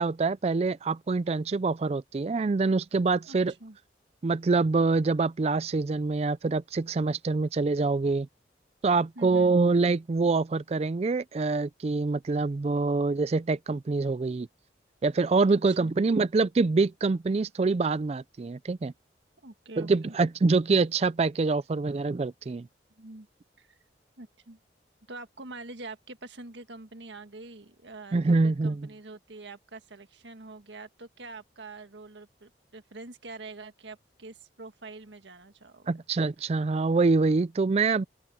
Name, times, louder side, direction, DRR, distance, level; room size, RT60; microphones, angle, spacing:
voice 1, 0.0-3.5 4.2-8.3 8.8-14.5 15.0-18.9 19.8-22.7 28.1-28.9 35.9-38.0, right 3 dB, 35° right, 0.4 m, -25 dB
voice 2, 3.2-3.8 9.2-9.6 15.5-15.9 19.4-20.1 23.0-23.3 23.6-23.7 24.2-24.6 25.1-35.9, right 3 dB, 75° right, 1.6 m, -45 dB
open air
head